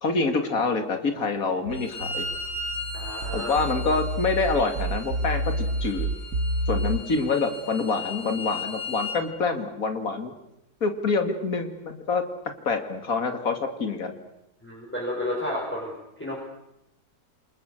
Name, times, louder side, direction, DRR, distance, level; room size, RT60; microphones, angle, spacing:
voice 1, 0.0-2.3 3.3-6.1 6.7-10.3 10.8-12.2 12.6-14.1, left 4 dB, 50° left, 6 dB, 2.9 m, -26 dB
Bowed string instrument, 1.7-9.2, left 2 dB, 30° left, 7.0 m, -37 dB
sound 1, 1.7-7.0, right 1 dB, 65° right, 2.1 m, -29 dB
voice 2, 2.9-3.5 14.6-15.9 16.2-16.3, left 1 dB, 5° left, -3 dB, 5.7 m, -31 dB
28.5 x 26.5 x 6.7 m, 0.88 s
omnidirectional pair, 1.9 m